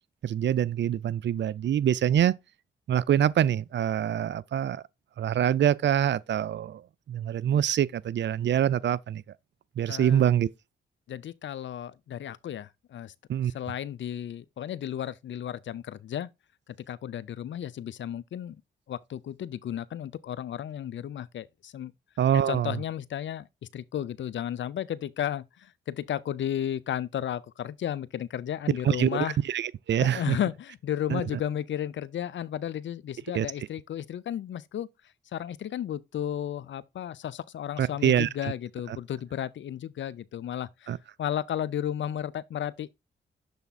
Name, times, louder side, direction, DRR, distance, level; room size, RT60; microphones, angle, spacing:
voice 1, 0.2-2.3 2.9-4.8 5.2-9.2 9.8-10.5 13.3-13.5 22.2-22.7 28.8-30.4 31.1-31.2 33.3-33.5 37.8-38.5 38.9-39.0 40.9-41.0, right 10 dB, 60° right, 0.5 m, -25 dB
voice 2, 9.9-10.3 11.1-13.1 13.5-16.3 16.9-18.6 18.9-21.9 22.5-23.5 23.7-29.4 30.0-34.9 35.3-42.9, left 10 dB, 65° left, 0.6 m, -33 dB
7.0 x 3.4 x 4.1 m
supercardioid pair, 50°, 20 cm